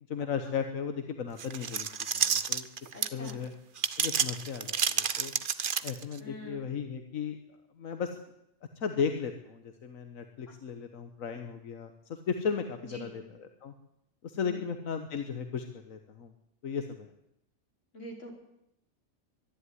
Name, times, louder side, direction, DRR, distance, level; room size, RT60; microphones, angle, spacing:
voice 1, 0.1-1.9 2.1-2.7 3.1-3.5 4.0-5.3 5.8-7.4 7.8-8.2 8.8-13.7 14.2-16.3 16.6-17.1, left 6 dB, 90° left, 7 dB, 1.6 m, -35 dB
sound 1, 1.4-3.3 3.8-6.2, right 7 dB, 45° right, 0.9 m, -30 dB
voice 2, 2.9-3.4 6.2-6.8 11.3-11.4 12.9-13.1 14.3-14.8 17.9-18.3, equal, 65° left, 1 dB, 5.1 m, -45 dB
23.5 x 11.5 x 9.8 m, 0.83 s
omnidirectional pair, 1.4 m